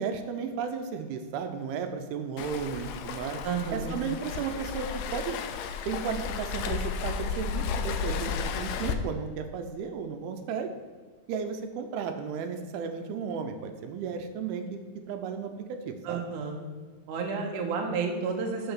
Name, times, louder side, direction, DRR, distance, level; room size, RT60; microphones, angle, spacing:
voice 1, 0.0-3.4 3.7-5.4 5.9-10.7 11.3-14.8 15.1-16.2, right 6 dB, 90° right, 6 dB, 2.6 m, -34 dB
Waves surf, 2.4-8.9, left 6 dB, 80° left, 2.0 m, -33 dB
voice 2, 3.4-4.0 16.1-16.6 17.1-18.7, right 5 dB, 65° right, 1 dB, 2.3 m, -31 dB
6.1 x 5.7 x 7.0 m, 1.4 s
omnidirectional pair, 4.3 m